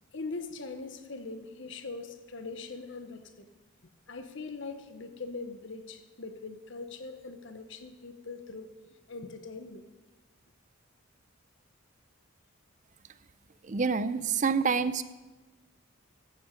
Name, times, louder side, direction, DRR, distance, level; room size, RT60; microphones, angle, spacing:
voice 1, 0.1-3.5 4.1-8.7 9.1-9.8, left 3 dB, 60° left, 8 dB, 0.9 m, -41 dB
voice 2, 13.6-15.0, right 5 dB, 35° right, 14 dB, 0.4 m, -27 dB
15.0 x 9.0 x 5.1 m, 1.2 s
head